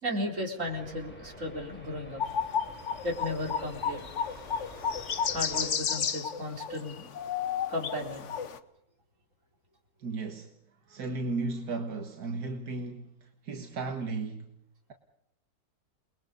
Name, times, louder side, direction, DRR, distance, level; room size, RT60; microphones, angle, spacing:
voice 1, 0.0-2.2 3.0-4.1 5.3-7.1 7.7-8.3, left 1 dB, 50° right, 4.4 m, -34 dB
sound 1, 0.6-5.7, equal, 5° left, 5.8 m, -48 dB
sound 2, 2.2-8.6, left 7 dB, 55° left, 1.3 m, -32 dB
voice 2, 10.0-10.5 10.9-14.6, right 3 dB, 80° right, 2.0 m, -35 dB
29.5 x 21.0 x 5.3 m
omnidirectional pair, 1.6 m